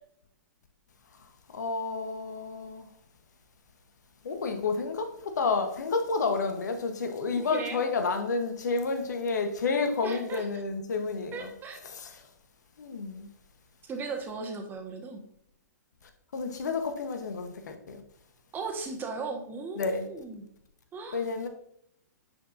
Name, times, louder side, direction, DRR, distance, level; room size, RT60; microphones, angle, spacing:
voice 1, 1.5-2.9 4.2-11.5 11.8-12.2 12.8-13.3 16.3-18.0 19.8-20.1 21.1-21.5, left 4 dB, 70° left, 1.2 m, -30 dB
voice 2, 7.5-7.8 10.0-10.4 11.3-11.8 13.8-15.2 18.5-20.5 20.9-21.3, right 4 dB, 20° right, 1.6 m, -37 dB
9.8 x 4.6 x 2.7 m
hypercardioid pair, 115°, 10 cm